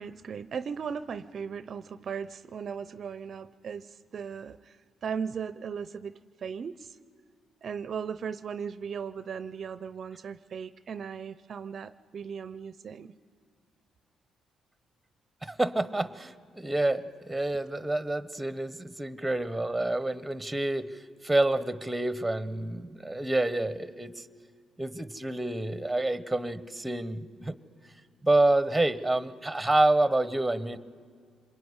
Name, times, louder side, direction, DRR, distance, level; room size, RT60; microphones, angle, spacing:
voice 1, 0.0-7.0 7.6-13.1, right 6 dB, 50° right, 14 dB, 0.6 m, -37 dB
voice 2, 15.4-24.2 24.8-27.5 28.2-30.8, right 2 dB, 5° right, 14 dB, 1.1 m, -28 dB
26.5 x 21.5 x 9.8 m, 2.1 s
cardioid pair, 90°, 0 cm